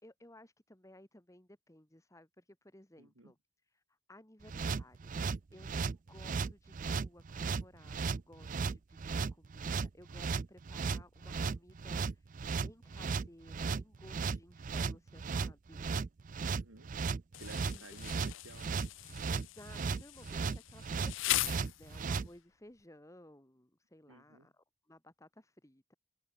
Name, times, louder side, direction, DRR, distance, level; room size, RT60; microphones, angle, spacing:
voice 1, 0.0-3.4 3.7-5.2 5.5-12.4 12.6-15.9 17.7-17.9 19.3-25.9, left 1 dB, 15° left, 1.8 m, -58 dB
voice 2, 3.0-3.3 16.4-16.9 17.4-18.9 24.1-24.5, right 2 dB, 75° right, 2.9 m, -55 dB
sound 1, 4.5-22.3, right 5 dB, 40° right, 0.4 m, -36 dB
Insect, 17.3-22.3, left 16 dB, 65° left, 0.4 m, -39 dB
open air
head